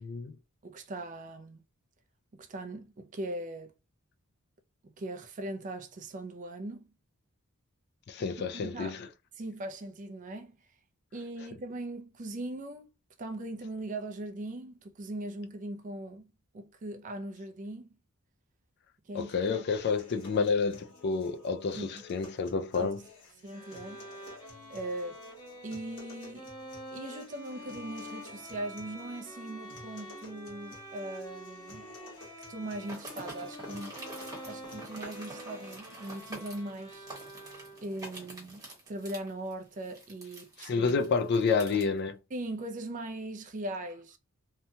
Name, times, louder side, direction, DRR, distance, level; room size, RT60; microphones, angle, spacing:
voice 1, 0.0-0.4 8.1-9.1 19.1-23.0 40.6-42.2, left 5 dB, 50° left, 0.3 m, -29 dB
voice 2, 0.6-1.6 2.3-3.7 4.8-6.9 8.6-9.0 9.4-10.6 11.1-12.9 13.2-17.9 19.1-19.6 21.8-21.9 22.8-23.0 23.4-24.0 24.7-25.2 25.6-26.5 26.9-31.9 32.5-33.9 34.4-37.1 37.8-38.6 38.9-41.0 42.3-44.2, right 1 dB, 35° right, 0.4 m, -40 dB
sound 1, 19.8-35.8, left 3 dB, 65° left, 1.2 m, -53 dB
Bowed string instrument, 23.4-38.1, equal, 20° left, 0.8 m, -47 dB
sound 2, 32.8-41.8, right 2 dB, 15° right, 1.0 m, -46 dB
2.8 x 2.2 x 2.7 m
head